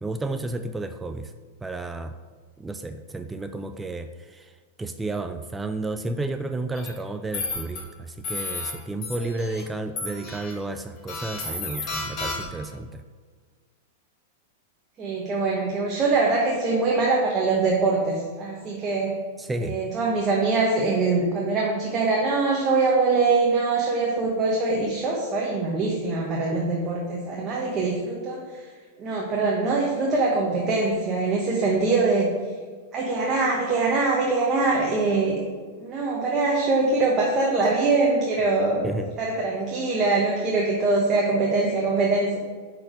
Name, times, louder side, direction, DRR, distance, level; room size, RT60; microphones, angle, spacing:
voice 1, 0.0-1.3 1.6-2.1 2.6-13.0 19.4-19.8 38.8-39.2, right 2 dB, 10° right, 8 dB, 0.3 m, -32 dB
sound 1, 6.7-6.9 7.3-7.8 8.2-8.7 9.0-9.6 10.0-10.5 11.1-12.6, left 3 dB, 35° left, 2.1 m, -32 dB
voice 2, 15.0-19.2 19.6-28.4 29.0-32.3 32.9-35.4 35.8-38.9 39.2-42.4, right 3 dB, 30° right, -3 dB, 1.1 m, -23 dB
5.8 x 4.6 x 5.0 m, 1.5 s
hypercardioid pair, 125°, 0 cm